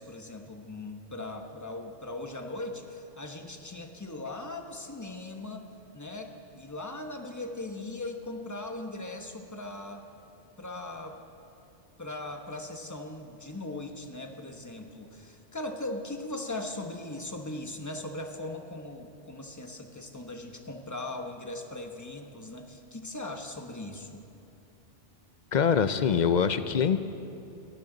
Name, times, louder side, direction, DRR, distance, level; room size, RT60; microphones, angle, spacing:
voice 1, 0.0-5.7 5.9-10.1 10.6-11.2 12.0-24.3, left 2 dB, 15° left, 4 dB, 1.0 m, -39 dB
voice 2, 25.5-27.0, left 7 dB, 55° left, 11 dB, 0.5 m, -24 dB
21.5 x 17.0 x 3.9 m, 2.8 s
omnidirectional pair, 1.2 m